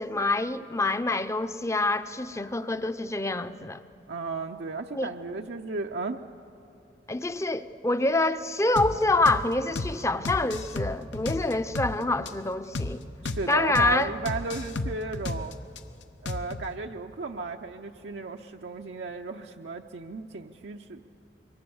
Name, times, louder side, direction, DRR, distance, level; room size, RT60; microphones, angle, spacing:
voice 1, 0.0-3.8 4.9-5.1 7.1-13.0 13.5-14.1, left 2 dB, 15° left, 0.6 m, -26 dB
voice 2, 4.1-6.2 13.2-15.5 16.2-21.0, right 3 dB, 75° right, 0.7 m, -34 dB
sound 1, 8.8-8.9 9.3-9.4 9.8-9.9 10.2-11.9 12.3-12.4 12.7-12.9 13.2-13.4 13.7-13.9 14.3-15.8 16.3-16.7, left 2 dB, 85° left, 0.9 m, -32 dB
26.0 x 23.5 x 7.1 m
head